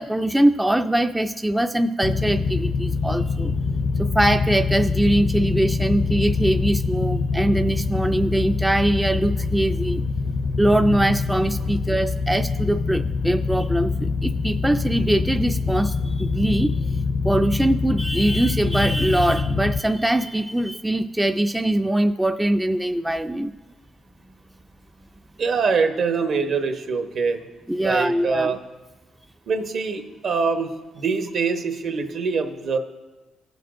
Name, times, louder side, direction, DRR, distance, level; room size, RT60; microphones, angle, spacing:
voice 1, 0.0-3.5 4.0-10.0 10.6-16.7 17.2-23.5 27.7-28.6, right 1 dB, 5° right, 7 dB, 0.3 m, -22 dB
sound 1, 2.0-19.8, left 4 dB, 55° left, 0.5 m, -24 dB
voice 2, 25.4-27.4 27.8-28.6 29.5-32.8, right 5 dB, 65° right, 5 dB, 1.0 m, -24 dB
17.0 x 6.7 x 2.5 m, 1.2 s
cardioid pair, 90°, 0 cm